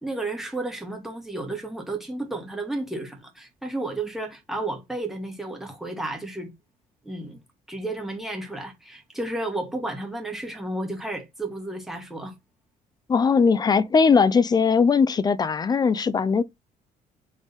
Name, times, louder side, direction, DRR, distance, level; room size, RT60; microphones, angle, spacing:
voice 1, 0.0-6.5 7.0-7.4 7.7-12.3, right 2 dB, ahead, 1.5 m, -32 dB
voice 2, 13.1-16.4, left 5 dB, 25° left, 0.4 m, -19 dB
3.6 x 3.1 x 4.0 m
cardioid pair, 110°, 17 cm